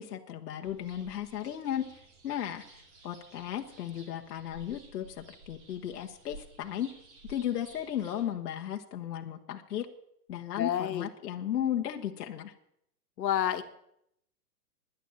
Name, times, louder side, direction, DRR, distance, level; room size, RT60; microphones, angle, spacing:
voice 1, 0.0-1.9 2.2-6.9 7.3-9.9 10.3-12.5, left 10 dB, 65° left, 3 dB, 1.4 m, -35 dB
sound 1, 0.6-8.3, right 2 dB, 45° right, 2.4 m, -54 dB
voice 2, 10.6-11.1 13.2-13.6, left 10 dB, 85° left, 7 dB, 1.6 m, -29 dB
10.5 x 10.0 x 8.8 m, 0.75 s
hypercardioid pair, 175°, 50 cm